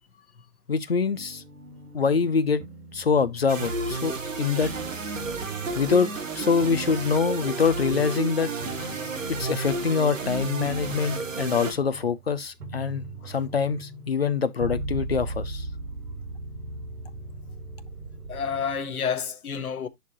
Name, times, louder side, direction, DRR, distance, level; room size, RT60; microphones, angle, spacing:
voice 1, 0.7-1.4 1.9-2.6 2.9-4.7 5.8-8.5 9.3-15.7, left 5 dB, 40° left, 0.7 m, -25 dB
sound 1, 1.1-2.3 2.6-4.3 4.6-6.2 6.6-8.2 8.6-10.2 10.6-18.8, right 1 dB, 70° right, 2.5 m, -39 dB
sound 2, 3.5-11.7, right 4 dB, 50° right, 1.8 m, -32 dB
voice 2, 18.3-19.9, left 6 dB, 60° left, 1.4 m, -30 dB
10.5 x 4.7 x 2.9 m
hypercardioid pair, 175°, 48 cm